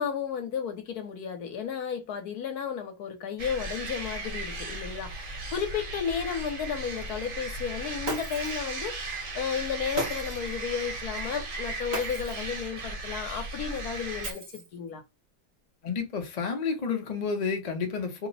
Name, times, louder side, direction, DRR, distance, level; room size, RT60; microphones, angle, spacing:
voice 1, 0.0-15.0, left 7 dB, 70° left, 1.2 m, -33 dB
sound 1, 3.4-14.3, right 2 dB, 55° right, 1.2 m, -36 dB
Shatter, 8.0-8.7 10.0-10.5 11.9-12.5 14.2-14.9, right 3 dB, 40° right, 0.7 m, -37 dB
voice 2, 15.8-18.3, left 5 dB, 50° left, 0.5 m, -30 dB
2.9 x 2.0 x 3.9 m
omnidirectional pair, 1.8 m